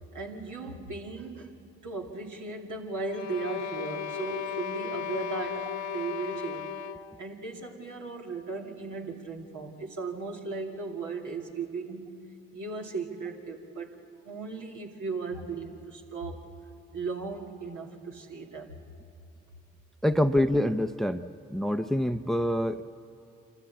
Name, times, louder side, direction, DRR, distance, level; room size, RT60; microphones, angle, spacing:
voice 1, 0.1-1.5 1.8-6.7 7.2-12.1 12.5-14.0 14.2-16.5 16.9-18.8, right 4 dB, 70° right, 0 dB, 2.7 m, -37 dB
sound 1, 3.1-7.2, left 8 dB, 60° left, 1.1 m, -35 dB
voice 2, 20.0-22.8, left 1 dB, ahead, 11 dB, 0.8 m, -26 dB
27.0 x 13.5 x 8.5 m, 2.8 s
hypercardioid pair, 40°, 32 cm